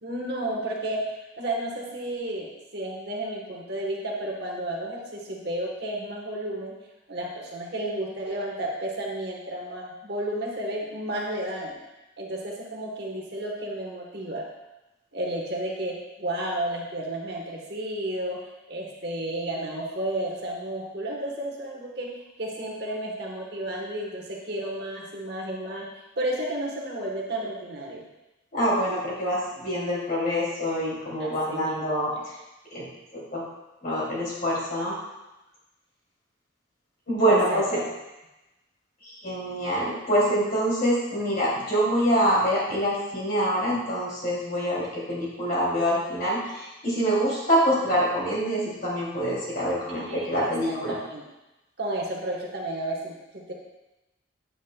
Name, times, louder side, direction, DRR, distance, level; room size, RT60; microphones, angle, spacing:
voice 1, 0.0-6.7 7.1-11.7 12.2-14.4 15.1-18.4 18.7-22.1 22.4-25.9 26.2-28.1 31.2-32.2 37.3-37.8 49.9-50.4 50.7-51.2 51.8-53.5, right 1 dB, 55° right, -1 dB, 1.3 m, -32 dB
voice 2, 28.5-32.1 32.7-33.4 33.8-35.0 37.1-37.8 39.0-50.9, equal, 50° left, -6 dB, 2.8 m, -25 dB
8.3 x 8.2 x 2.3 m, 0.99 s
head